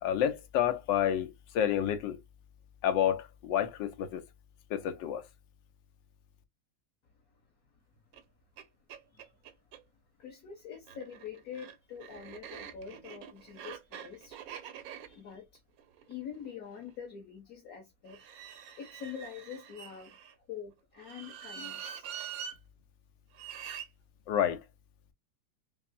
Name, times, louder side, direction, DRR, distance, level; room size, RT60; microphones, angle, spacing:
voice 1, 0.0-2.2 2.8-4.2 4.7-5.2 24.3-24.6, left 10 dB, 75° left, 1.4 m, -29 dB
sound 1, 8.1-8.2 8.6-8.7 8.9-9.8 10.7-16.9 18.1-20.3 21.0-22.6 23.3-23.9, right 8 dB, 65° right, 0.9 m, -45 dB
voice 2, 10.2-14.4 14.9-15.5 16.1-18.2 18.8-20.2 20.5-22.1, left 7 dB, 55° left, 1.3 m, -45 dB
5.6 x 2.0 x 2.6 m
omnidirectional pair, 2.0 m